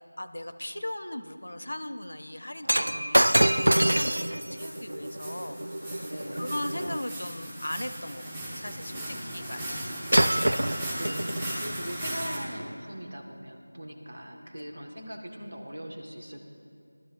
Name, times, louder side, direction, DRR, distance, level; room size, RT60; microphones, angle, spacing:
voice 1, 0.0-10.1 14.6-14.7, left 1 dB, 70° left, 10 dB, 0.6 m, -38 dB
Shatter, 2.6-7.0 9.7-9.8 10.1-11.6 12.4-12.5, right 1 dB, 85° right, 0.3 m, -26 dB
sound 1, 4.4-12.4, right 1 dB, 10° right, 1.2 m, -37 dB
voice 2, 6.1-6.5 10.9-16.4, equal, 65° right, 3 dB, 1.6 m, -40 dB
19.0 x 12.5 x 2.5 m, 2.5 s
figure-of-eight pair, 175°, 0 cm